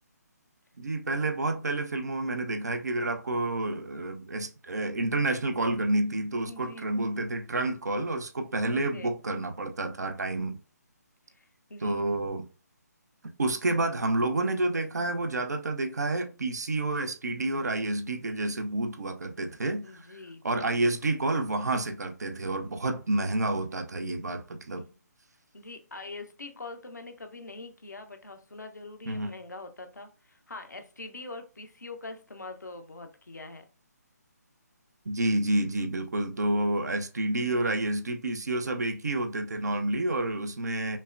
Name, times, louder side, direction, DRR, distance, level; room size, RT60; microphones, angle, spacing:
voice 1, 0.8-10.6 11.8-12.5 13.4-20.2 20.4-24.8 29.1-29.3 35.0-41.0, right 2 dB, 70° right, 0.6 m, -29 dB
voice 2, 6.5-6.8 8.7-9.1 11.3-12.1 19.8-21.2 24.8-24.9 25.5-33.6 40.8-41.0, left 3 dB, 80° left, 0.8 m, -44 dB
5.4 x 2.1 x 2.5 m
figure-of-eight pair, 145°, 9 cm